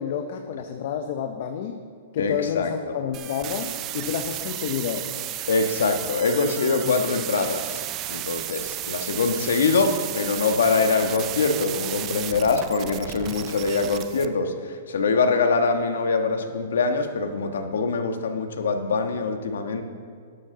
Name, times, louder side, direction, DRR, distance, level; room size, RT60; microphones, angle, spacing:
voice 1, 0.0-1.8 2.1-5.1 6.8-7.2, left 8 dB, 40° left, 6 dB, 0.6 m, -30 dB
voice 2, 2.2-2.7 5.5-19.8, left 4 dB, 80° left, 6 dB, 1.3 m, -24 dB
sound 1, 3.1-14.3, right 13 dB, 20° right, 0.3 m, -33 dB
12.0 x 12.0 x 3.9 m, 2.2 s
hypercardioid pair, 175°, 0 cm